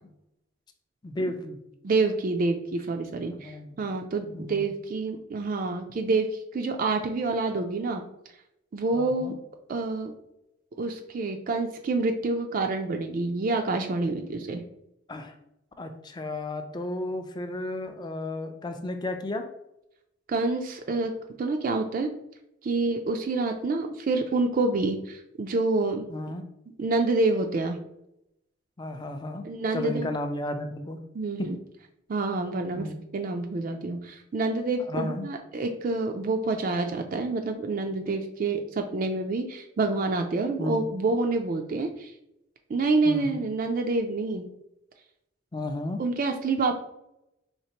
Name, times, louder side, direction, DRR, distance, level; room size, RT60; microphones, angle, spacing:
voice 1, 1.0-1.6 3.3-3.8 4.3-4.6 8.9-9.3 15.1-15.3 15.8-19.4 26.1-26.4 28.8-29.5 29.7-31.0 31.4-31.5 32.7-33.0 34.9-35.3 40.6-40.9 43.0-43.4 45.5-46.0, left 1 dB, 20° left, 6 dB, 0.4 m, -33 dB
voice 2, 1.8-8.0 8.7-9.4 9.7-10.1 10.8-14.6 20.3-22.1 22.6-26.1 26.8-27.8 29.4-30.1 31.1-31.6 32.1-32.9 33.1-42.1 42.7-44.5 46.0-46.7, right 3 dB, 45° right, 4 dB, 0.3 m, -27 dB
4.3 x 3.3 x 2.9 m, 0.83 s
head